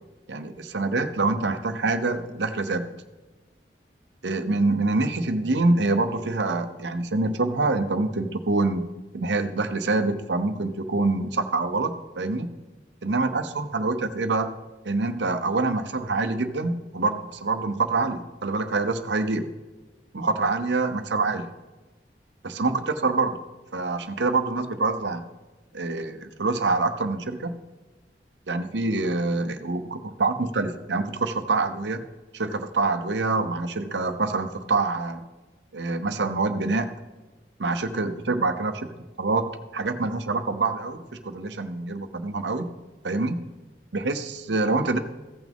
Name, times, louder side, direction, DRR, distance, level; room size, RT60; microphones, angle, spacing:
voice 1, 0.3-2.9 4.2-8.8 9.1-12.5 13.0-14.5 14.8-19.5 20.1-21.5 22.4-23.4 23.7-25.2 25.7-27.5 28.5-32.0 32.3-35.2 35.7-36.9 37.6-38.9 39.2-42.7 43.0-43.4 43.9-45.0, right 3 dB, 90° right, 8 dB, 0.9 m, -26 dB
15.5 x 6.1 x 3.6 m, 1.2 s
head